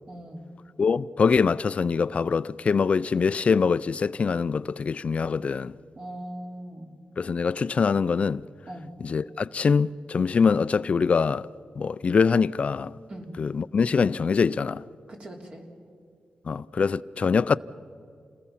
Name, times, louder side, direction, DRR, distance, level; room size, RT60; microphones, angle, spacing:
voice 1, 0.1-0.5 5.9-7.0 8.7-8.9 13.1-13.3 15.1-15.6, right 1 dB, 45° right, 3.3 m, -40 dB
voice 2, 0.8-5.7 7.2-8.4 9.0-11.5 11.8-12.9 13.4-14.8 16.5-17.6, left 5 dB, 50° left, 0.4 m, -24 dB
28.5 x 19.5 x 5.8 m
cardioid pair, 85°, 3 cm